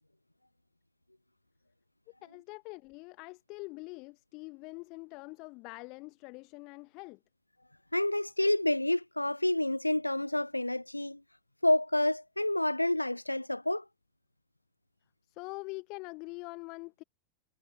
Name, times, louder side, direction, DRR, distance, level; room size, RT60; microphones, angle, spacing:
voice 1, 2.2-7.2 15.3-17.0, left 26 dB, 40° left, 1.2 m, -44 dB
voice 2, 7.9-11.2 11.6-13.8, left 1 dB, 85° left, 0.6 m, -29 dB
figure-of-eight pair, 90°, 0 cm